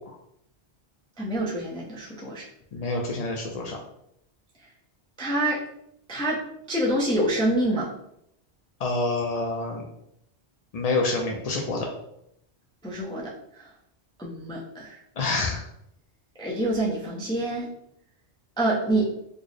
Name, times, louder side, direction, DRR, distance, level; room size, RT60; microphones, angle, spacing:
voice 1, 1.2-2.5 5.2-5.6 6.1-6.4 6.7-7.9 12.8-13.7 14.2-15.0 16.4-17.7 18.6-19.1, right 1 dB, 5° left, -5 dB, 0.5 m, -26 dB
voice 2, 2.7-3.8 8.8-9.8 10.7-11.9 15.2-15.7, left 3 dB, 60° left, 0 dB, 0.4 m, -27 dB
4.2 x 2.0 x 3.1 m, 0.75 s
omnidirectional pair, 1.1 m